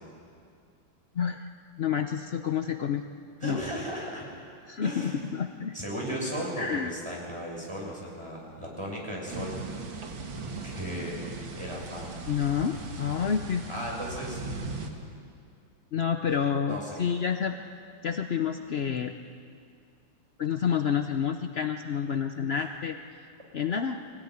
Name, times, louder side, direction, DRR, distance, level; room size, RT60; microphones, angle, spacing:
voice 1, 1.1-1.4 1.8-3.0 3.4-3.6 4.7-5.7 6.6-6.9 12.3-13.7 15.9-17.6 18.0-19.1 20.4-23.0 23.5-24.0, left 7 dB, 65° left, 6 dB, 0.6 m, -29 dB
voice 2, 3.4-4.3 4.8-5.2 5.7-9.6 10.6-11.3 11.6-12.1 13.7-14.4 16.7-17.0 22.5-22.7, equal, 15° right, -2 dB, 6.3 m, -36 dB
sound 1, 9.3-14.9, right 3 dB, 70° right, 2.5 m, -38 dB
23.5 x 17.5 x 9.9 m, 2.3 s
omnidirectional pair, 2.2 m